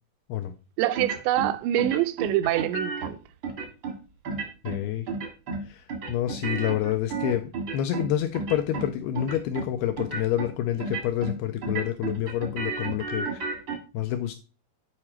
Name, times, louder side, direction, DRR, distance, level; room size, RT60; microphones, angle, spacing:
voice 1, 0.8-3.2, right 13 dB, 90° right, 2.9 m, -25 dB
sound 1, 0.9-1.5 1.8-3.1 3.4-3.9 4.2-4.8 5.1-5.6 5.9-8.1 8.3-8.9 9.1-9.7 10.0-10.5 10.8-11.3 11.6-13.8, right 4 dB, 70° right, 1.1 m, -32 dB
voice 2, 4.6-5.1 5.6-13.5 13.9-14.3, left 11 dB, 85° left, 2.2 m, -28 dB
8.7 x 4.8 x 4.3 m
omnidirectional pair, 5.0 m